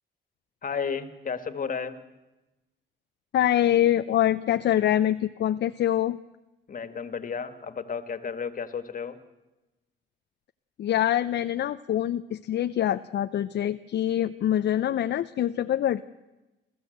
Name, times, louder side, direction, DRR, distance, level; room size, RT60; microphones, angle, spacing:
voice 1, 0.6-2.0 6.7-9.2, left 6 dB, 45° left, 10 dB, 1.9 m, -33 dB
voice 2, 3.3-6.2 10.8-16.0, left 11 dB, 60° left, 10 dB, 0.6 m, -25 dB
30.0 x 13.5 x 7.9 m, 1.1 s
cardioid pair, 90°, 20 cm